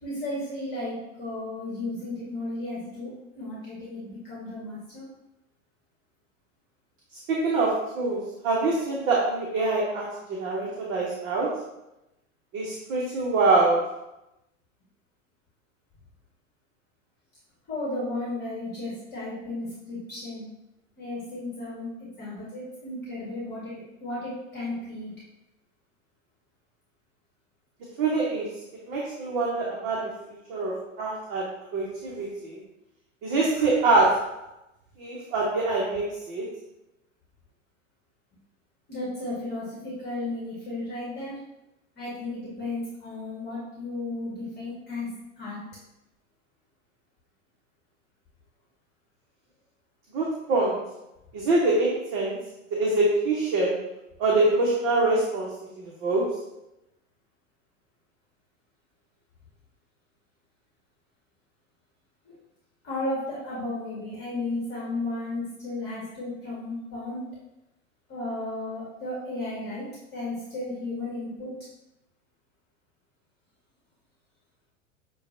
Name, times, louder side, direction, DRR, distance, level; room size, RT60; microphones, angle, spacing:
voice 1, 0.0-5.1 17.7-20.5 21.0-25.1 38.9-41.3 42.0-45.1 45.4-45.6 62.2-62.4 62.8-67.2 68.1-69.9 70.1-71.5, left 2 dB, 25° left, -6 dB, 1.3 m, -34 dB
voice 2, 7.3-11.6 12.5-13.9 28.0-28.5 28.9-30.1 30.5-31.5 31.7-32.6 33.2-34.3 35.0-36.5 50.1-50.8 51.3-52.4 52.7-53.8 54.2-55.5 56.0-56.3, right 3 dB, 35° right, -4 dB, 0.8 m, -24 dB
6.3 x 2.3 x 2.5 m, 0.91 s
figure-of-eight pair, 90°, 40 cm